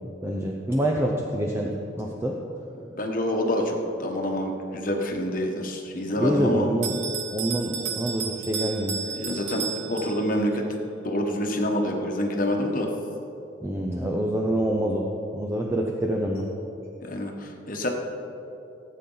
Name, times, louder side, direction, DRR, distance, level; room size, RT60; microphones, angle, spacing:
voice 1, 0.2-2.4 6.2-6.9 7.3-9.0 13.6-16.5, right 1 dB, 15° right, 0 dB, 0.6 m, -26 dB
voice 2, 2.8-6.7 9.2-10.8 11.0-12.9 17.0-17.9, left 1 dB, 45° left, 2 dB, 1.2 m, -27 dB
Bell, 6.8-10.5, right 7 dB, 70° right, 0.8 m, -33 dB
16.0 x 8.5 x 3.9 m, 3.0 s
head